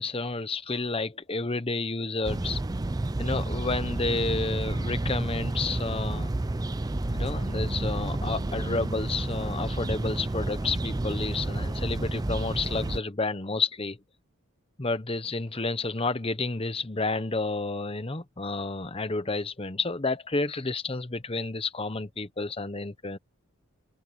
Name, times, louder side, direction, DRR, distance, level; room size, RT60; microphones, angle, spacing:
voice 1, 0.0-2.6 3.2-6.3 7.1-14.0 14.8-23.2, left 3 dB, 25° left, 0.9 m, -30 dB
sound 1, 2.2-13.0, right 2 dB, 15° right, 0.4 m, -30 dB
sound 2, 6.7-13.0, equal, 35° right, 6.0 m, -41 dB
open air
head